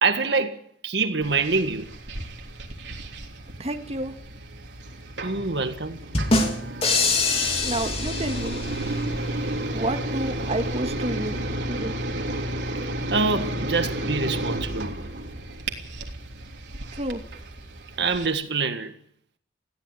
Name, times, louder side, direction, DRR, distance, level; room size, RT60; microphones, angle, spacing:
voice 1, 0.0-1.9 5.2-6.0 13.1-15.0 18.0-18.9, right 4 dB, 70° right, 1.8 m, -25 dB
sound 1, 1.2-18.3, right 1 dB, 85° right, 3.3 m, -32 dB
voice 2, 3.6-4.2 7.6-8.6 9.7-12.0 16.9-17.2, right 1 dB, 35° right, 1.7 m, -30 dB
sound 2, 6.1-9.0, left 3 dB, 35° left, 3.1 m, -24 dB
20.5 x 15.5 x 9.1 m
head